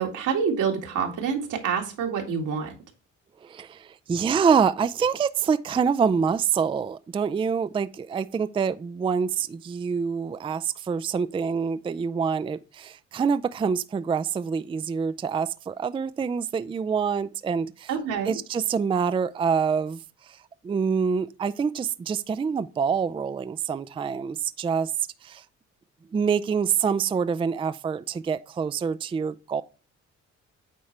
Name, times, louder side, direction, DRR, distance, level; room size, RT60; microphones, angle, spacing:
voice 1, 0.0-2.7 17.9-18.3, right 6 dB, 85° right, 2.0 m, -27 dB
voice 2, 3.4-17.9 18.3-20.0 20.6-24.9 25.2-25.4 26.1-29.6, right 6 dB, 20° right, 0.3 m, -26 dB
8.7 x 4.2 x 3.2 m
cardioid pair, 90°, 30 cm